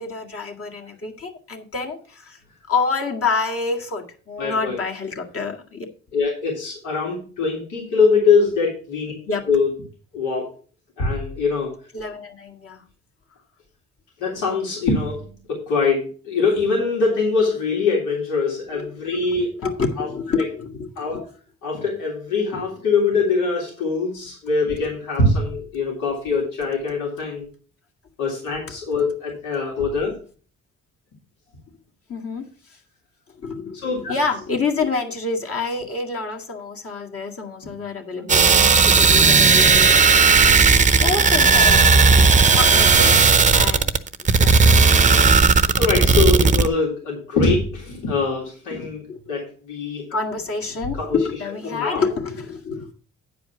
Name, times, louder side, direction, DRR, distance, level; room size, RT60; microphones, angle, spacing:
voice 1, 0.0-2.4 2.7-5.9 9.3-9.5 11.9-12.9 19.6-21.2 32.1-32.8 33.4-40.1 41.0-43.2 43.5-44.0 44.4-44.6 48.7-49.2 50.1-52.9, left 4 dB, 50° left, 2 dB, 2.1 m, -27 dB
voice 2, 4.4-4.8 6.1-9.1 9.5-9.7 10.1-10.5 11.0-11.7 14.2-19.5 20.0-20.1 20.4-20.5 21.0-21.2 21.6-27.5 28.2-30.2 33.7-34.1 38.2-38.3 45.7-50.0 51.0-51.2 51.6-52.1, left 4 dB, 90° left, -3 dB, 3.4 m, -23 dB
sound 1, 38.3-46.7, right 4 dB, 25° right, 0.7 m, -14 dB
9.6 x 4.9 x 6.1 m, 0.40 s
cardioid pair, 90°, 30 cm